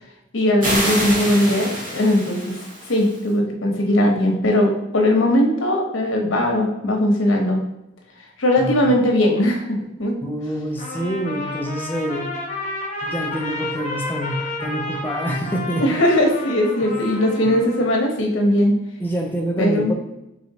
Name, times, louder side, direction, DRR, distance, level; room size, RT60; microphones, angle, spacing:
voice 1, 0.3-2.6 2.9-7.6 8.4-10.1 15.8-18.7 19.6-19.9, left 1 dB, 85° left, 1 dB, 0.9 m, -19 dB
sound 1, 0.6-3.2, right 1 dB, 40° right, 1.1 m, -26 dB
voice 2, 10.2-12.3 13.0-15.9 16.8-17.0 17.4-17.6 19.0-19.9, right 1 dB, 10° left, 1 dB, 0.5 m, -26 dB
Trumpet, 10.8-17.9, left 2 dB, 35° left, 0.8 m, -31 dB
4.3 x 3.0 x 2.8 m, 0.89 s
head